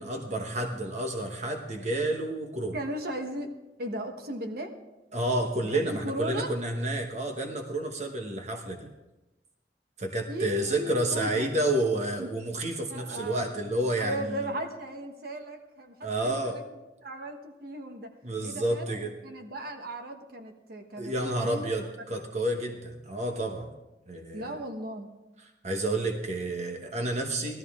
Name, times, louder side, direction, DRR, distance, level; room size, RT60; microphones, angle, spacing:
voice 1, 0.0-2.8 5.1-8.9 10.0-14.5 16.0-16.6 18.2-19.1 21.0-23.7 24.1-24.6 25.6-27.6, right 1 dB, 40° right, 3 dB, 1.1 m, -30 dB
voice 2, 2.7-3.5 3.8-4.7 5.6-6.5 10.3-11.5 12.2-12.4 12.9-13.4 14.0-18.1 18.4-21.7 24.3-25.1, right 1 dB, 60° right, 5 dB, 1.2 m, -37 dB
17.5 x 13.0 x 3.6 m, 1.0 s
head